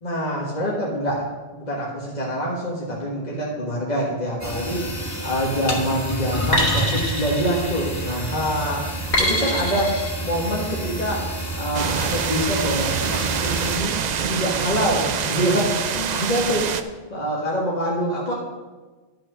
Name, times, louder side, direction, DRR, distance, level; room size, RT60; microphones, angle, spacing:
voice 1, 0.0-1.2 1.5-9.9 10.2-11.2 11.6-14.0 14.3-18.3, equal, 45° left, -4 dB, 1.7 m, -25 dB
sound 1, 4.4-13.8, right 1 dB, 15° left, 1.4 m, -29 dB
sound 2, 5.0-5.4 6.5-8.2 9.1-10.1, left 1 dB, 85° left, 2.8 m, -25 dB
sound 3, 11.7-16.8, right 7 dB, 50° right, 0.6 m, -25 dB
11.5 x 5.8 x 6.1 m, 1.3 s
omnidirectional pair, 1.0 m